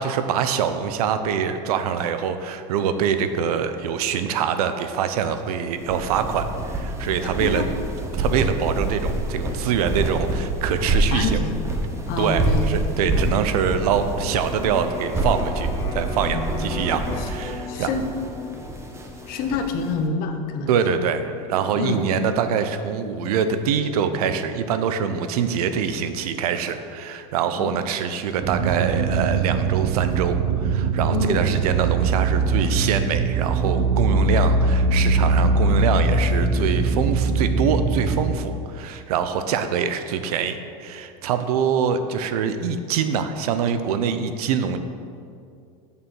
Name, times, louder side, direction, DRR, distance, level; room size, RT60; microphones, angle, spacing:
voice 1, 0.0-7.6 8.1-11.4 12.2-17.9 20.7-44.8, right 7 dB, 85° right, 9 dB, 0.7 m, -24 dB
sound 1, 5.7-19.9, right 2 dB, 15° right, 1.0 m, -27 dB
voice 2, 7.2-7.7 11.1-11.7 12.1-13.2 16.2-16.6 17.2-17.3 17.7-18.1 19.3-21.0 21.7-22.0 27.6-27.7 31.1-31.4, left 4 dB, 55° left, 5 dB, 1.1 m, -27 dB
Electric guitar, 14.6-22.3, left 4 dB, 75° left, 2.0 m, -38 dB
sound 2, 28.4-38.4, right 3 dB, 40° right, 0.9 m, -21 dB
7.0 x 6.8 x 6.3 m, 2.4 s
supercardioid pair, 130°, 19 cm